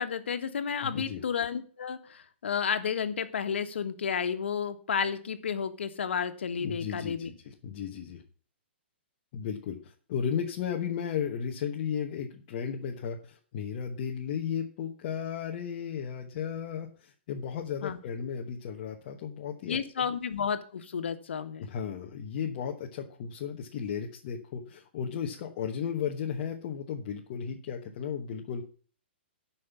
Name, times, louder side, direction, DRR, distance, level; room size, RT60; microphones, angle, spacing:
voice 1, 0.0-7.3 17.8-18.0 19.7-21.7, left 7 dB, 75° left, 9 dB, 1.5 m, -32 dB
voice 2, 0.8-1.2 6.6-8.2 9.3-20.1 21.6-28.6, left 7 dB, 35° left, 0 dB, 1.2 m, -35 dB
9.4 x 5.8 x 8.2 m, 0.42 s
hypercardioid pair, 165°, 6 cm